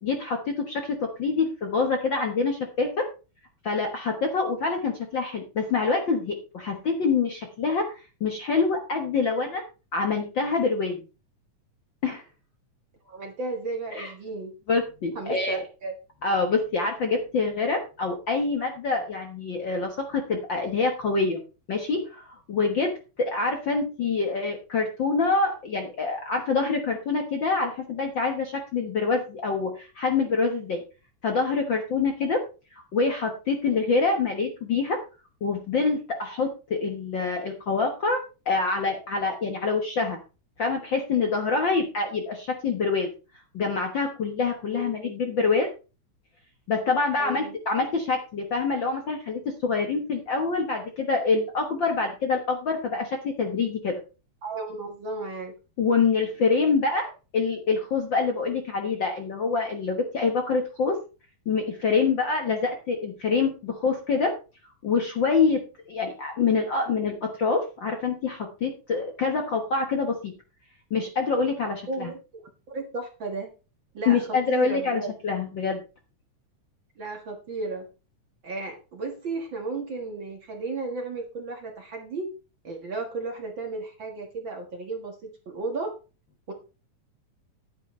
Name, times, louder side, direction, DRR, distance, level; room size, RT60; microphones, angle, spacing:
voice 1, 0.0-3.1 3.6-7.9 8.2-9.6 9.9-11.0 12.0-12.2 13.9-14.1 14.7-15.6 16.2-21.4 21.7-22.9 23.2-30.8 31.2-32.4 32.7-35.0 35.4-40.2 40.6-43.1 43.5-45.7 46.7-54.0 55.8-61.0 61.4-64.3 64.8-65.6 65.9-70.3 70.9-72.1 74.0-75.8, left 4 dB, 50° left, 3 dB, 1.5 m, -26 dB
voice 2, 13.1-14.5 15.2-15.9 44.7-45.6 47.1-47.5 54.4-55.5 71.9-72.4 72.7-73.5 73.9-75.1 77.0-77.8 78.4-82.3 82.6-85.2 85.5-85.9 86.5-86.6, right 3 dB, 45° right, 3 dB, 1.9 m, -34 dB
11.0 x 9.8 x 3.2 m, 0.32 s
omnidirectional pair, 3.6 m